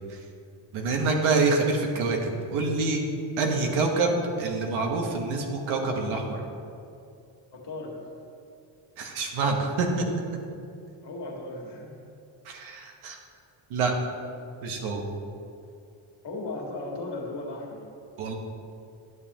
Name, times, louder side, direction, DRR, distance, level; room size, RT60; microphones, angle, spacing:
voice 1, 0.7-3.0 3.4-4.1 4.4-6.4 9.0-10.1 12.4-13.2 13.7-13.9 14.6-15.0 18.2-18.3, right 3 dB, 80° right, 2 dB, 1.3 m, -26 dB
voice 2, 7.5-8.0 11.0-12.0 16.2-17.9, left 2 dB, 55° left, -1 dB, 2.0 m, -36 dB
11.0 x 7.1 x 3.0 m, 2.5 s
supercardioid pair, 70°, 49 cm